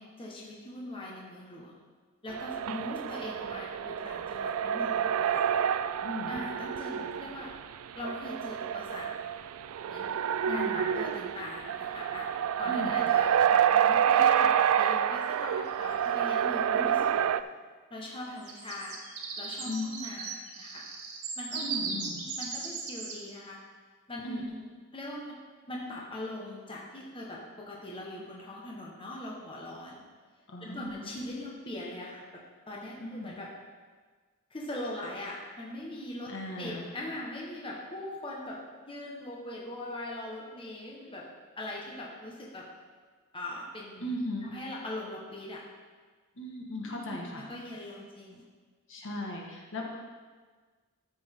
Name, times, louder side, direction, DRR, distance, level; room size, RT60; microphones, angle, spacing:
voice 1, 0.0-1.8 2.2-5.4 6.3-7.6 7.9-9.1 9.9-10.1 10.5-12.3 12.6-17.3 17.9-19.0 19.4-20.8 21.4-23.6 24.1-24.6 24.9-25.4 25.7-30.0 30.6-33.5 34.5-41.3 41.6-42.7 43.3-45.6 46.8-48.4, left 1 dB, 25° left, -3 dB, 1.2 m, -41 dB
sound 1, 2.3-17.4, right 9 dB, 65° right, 0.3 m, -28 dB
voice 2, 6.0-6.3 10.4-10.8 12.7-13.0 19.6-19.9 21.5-22.2 24.2-24.4 30.5-31.1 33.0-33.3 36.3-36.9 44.0-44.5 46.4-47.4 48.9-49.8, left 1 dB, 60° left, -1 dB, 1.4 m, -37 dB
sound 2, 8.7-8.8 13.1-13.7 15.3-15.4 15.7-16.0 18.3-23.2, right 4 dB, 85° right, 1.7 m, -38 dB
13.0 x 6.1 x 3.6 m, 1.5 s
head